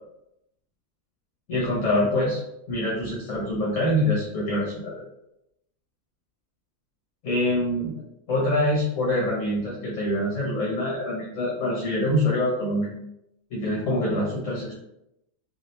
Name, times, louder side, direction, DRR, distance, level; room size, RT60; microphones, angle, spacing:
voice 1, 1.5-2.4 2.7-5.0 7.2-7.9 8.3-12.9 13.5-14.7, left 1 dB, 60° left, -4 dB, 1.1 m, -25 dB
2.9 x 2.7 x 3.0 m, 0.83 s
omnidirectional pair, 1.6 m